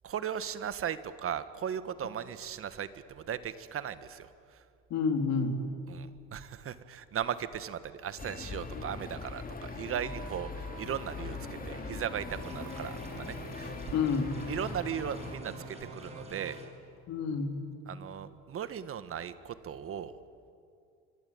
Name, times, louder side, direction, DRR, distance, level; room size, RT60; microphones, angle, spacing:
voice 1, 0.0-4.6 5.9-13.7 14.5-16.6 17.9-20.2, right 9 dB, 50° right, 12 dB, 1.4 m, -37 dB
voice 2, 4.9-5.6 13.9-14.4 17.1-17.6, left 5 dB, 65° left, 5 dB, 3.7 m, -29 dB
sound 1, 8.2-15.4, left 4 dB, 30° left, 2.6 m, -41 dB
sound 2, 10.0-16.7 16.9-17.1, right 6 dB, 80° right, 3.8 m, -50 dB
sound 3, 12.3-16.7, equal, 20° right, 6.2 m, -46 dB
25.5 x 22.5 x 8.8 m, 2.4 s
supercardioid pair, 95°, 29 cm